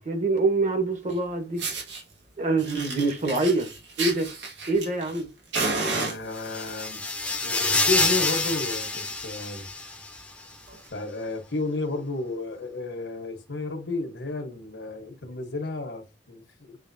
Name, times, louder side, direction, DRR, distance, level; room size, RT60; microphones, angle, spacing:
voice 1, 0.0-1.6 2.4-3.7 4.0-4.3 4.7-5.3 10.7-10.8, right 3 dB, 45° right, 1.2 m, -25 dB
Fire, 1.1-1.2 1.6-2.0 2.6-5.2 5.5-6.7 7.5-7.8 8.1-8.2 8.6-8.7 8.9-9.2 9.7-9.8 10.7-10.8, right 3 dB, 85° right, 1.5 m, -31 dB
voice 2, 5.9-7.0 7.4-9.7 10.9-16.8, left 3 dB, 85° left, 1.2 m, -32 dB
sound 1, 6.3-10.2, left 3 dB, 5° left, 0.6 m, -27 dB
6.9 x 2.6 x 2.7 m
head